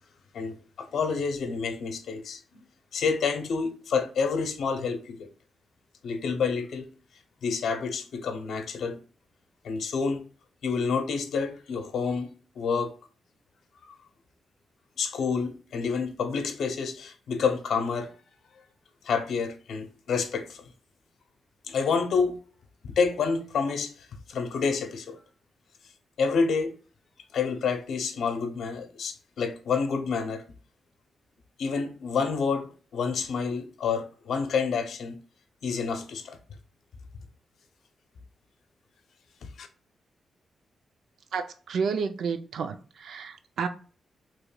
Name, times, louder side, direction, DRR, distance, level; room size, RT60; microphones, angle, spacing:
voice 1, 0.3-2.4 2.9-5.3 6.0-6.9 7.4-9.0 9.6-10.3 10.6-12.9 13.9-14.0 15.0-18.1 19.0-20.7 21.6-22.4 22.8-25.2 26.2-26.7 27.3-30.4 31.6-35.2 35.6-36.4 39.4-39.7, left 5 dB, 70° left, 0.6 m, -28 dB
voice 2, 41.3-43.7, right 5 dB, 70° right, 0.4 m, -31 dB
4.7 x 3.0 x 2.2 m
wide cardioid pair, 160°, 0 cm